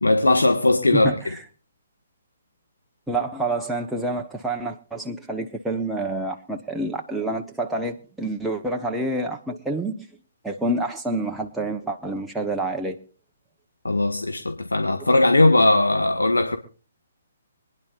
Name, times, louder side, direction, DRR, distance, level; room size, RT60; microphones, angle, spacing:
voice 1, 0.0-1.1 13.8-16.6, left 2 dB, 90° left, 1.6 m, -19 dB
voice 2, 0.9-1.4 3.1-10.1 10.4-13.0, right 2 dB, 5° right, 1.0 m, -28 dB
25.5 x 10.5 x 2.5 m
figure-of-eight pair, 135°, 0 cm